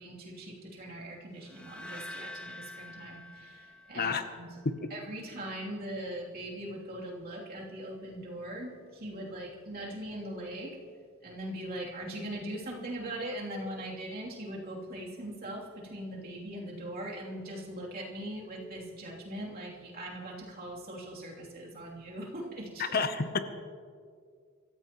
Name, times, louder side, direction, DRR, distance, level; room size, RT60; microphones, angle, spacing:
voice 1, 0.0-4.6 4.9-10.8 11.2-23.0, right 1 dB, 45° right, -3 dB, 3.0 m, -40 dB
sound 1, 1.4-4.6, left 2 dB, 5° left, 0.7 m, -46 dB
voice 2, 3.9-4.3 4.6-4.9 22.8-23.4, left 4 dB, 45° left, 9 dB, 0.8 m, -30 dB
26.0 x 14.5 x 3.0 m, 2.1 s
head